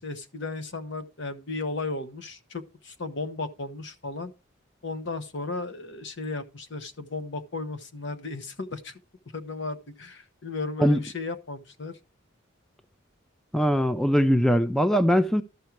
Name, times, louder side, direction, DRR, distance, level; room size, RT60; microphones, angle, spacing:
voice 1, 0.0-4.3 4.8-8.9 9.3-12.0, left 3 dB, 60° left, 1.1 m, -35 dB
voice 2, 13.5-15.4, equal, 5° left, 0.4 m, -21 dB
13.0 x 5.5 x 4.5 m
head